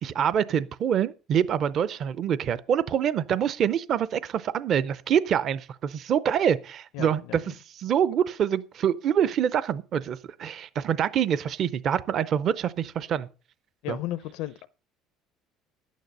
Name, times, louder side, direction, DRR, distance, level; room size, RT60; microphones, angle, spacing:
voice 1, 0.0-13.3 13.9-14.0, right 8 dB, 35° right, 0.5 m, -26 dB
voice 2, 6.9-7.5 13.8-14.7, left 15 dB, 70° left, 0.6 m, -34 dB
11.5 x 9.3 x 5.3 m
cardioid pair, 170°, 0 cm